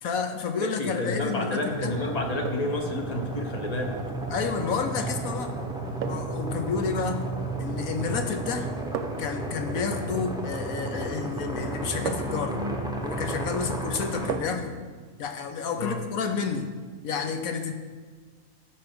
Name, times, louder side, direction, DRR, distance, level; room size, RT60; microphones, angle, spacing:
voice 1, 0.0-1.9 4.3-5.6 6.0-7.3 7.6-8.7 9.2-12.6 13.0-14.7 15.2-16.7 17.0-17.7, left 5 dB, 65° left, 6 dB, 1.2 m, -30 dB
voice 2, 0.6-4.0 15.8-16.0, left 2 dB, 30° left, 3 dB, 1.0 m, -30 dB
sound 1, 0.9-1.2 2.4-2.9 4.9-5.1 6.0-6.5 7.8-8.2 8.9-9.4 11.1-11.2 12.1-12.5 14.3-14.7 15.1-15.2, right 8 dB, 75° right, 1.0 m, -36 dB
sound 2, 1.7-14.4, right 2 dB, 5° right, 0.5 m, -33 dB
13.0 x 4.8 x 5.2 m, 1.5 s
omnidirectional pair, 1.6 m